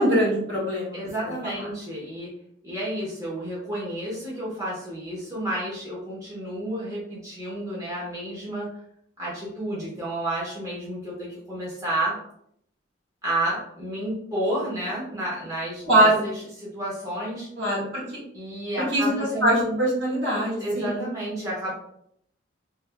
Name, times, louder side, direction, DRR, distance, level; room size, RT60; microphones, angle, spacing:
voice 1, 0.0-1.0 15.9-16.2 17.6-18.0 18.9-19.0 19.4-21.0, right 1 dB, 65° right, -6 dB, 1.5 m, -22 dB
voice 2, 0.9-2.3 2.6-8.7 9.2-12.2 13.2-17.5 18.3-19.8 20.6-21.7, right 1 dB, 15° right, -7 dB, 1.0 m, -31 dB
3.4 x 3.3 x 2.2 m, 0.71 s
head